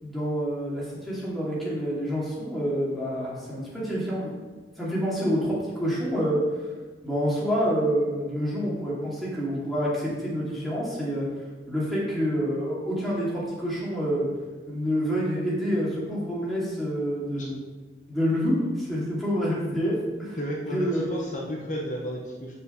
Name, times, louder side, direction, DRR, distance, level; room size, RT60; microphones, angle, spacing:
voice 1, 0.0-4.4 4.8-6.6 7.0-11.3 11.7-14.3 14.7-17.6 18.1-20.4 20.7-21.1, equal, ahead, -8 dB, 2.5 m, -27 dB
voice 2, 20.4-22.5, equal, 45° left, -2 dB, 1.1 m, -33 dB
6.8 x 5.0 x 6.9 m, 1.3 s
head